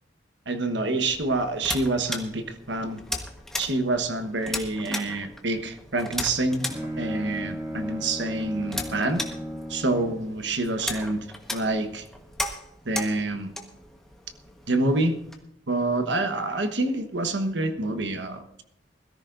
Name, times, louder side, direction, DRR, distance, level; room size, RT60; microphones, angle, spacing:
voice 1, 0.5-3.0 3.6-6.7 7.0-9.2 9.7-11.2 11.5-12.0 12.8-13.5 14.7-15.2 15.7-18.6, right 2 dB, 70° right, 7 dB, 1.2 m, -27 dB
sound 1, 1.1-15.3, left 1 dB, ahead, 1.2 m, -37 dB
Bowed string instrument, 6.5-10.3, equal, 15° right, 2.1 m, -36 dB
21.0 x 14.0 x 2.6 m, 0.81 s
head